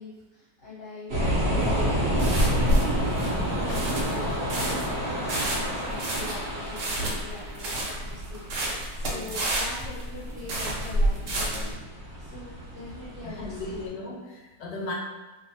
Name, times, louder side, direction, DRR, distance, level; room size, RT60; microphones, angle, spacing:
voice 1, 0.0-11.7 12.2-13.9, left 3 dB, 55° left, -11 dB, 0.9 m, -43 dB
sound 1, 1.1-13.9, equal, 50° right, 0.8 m, -30 dB
sound 2, 1.6-11.7, right 1 dB, 80° right, 1.2 m, -29 dB
voice 2, 13.2-14.9, left 2 dB, 85° left, -2 dB, 1.2 m, -38 dB
2.6 x 2.5 x 2.6 m, 1.1 s
omnidirectional pair, 1.8 m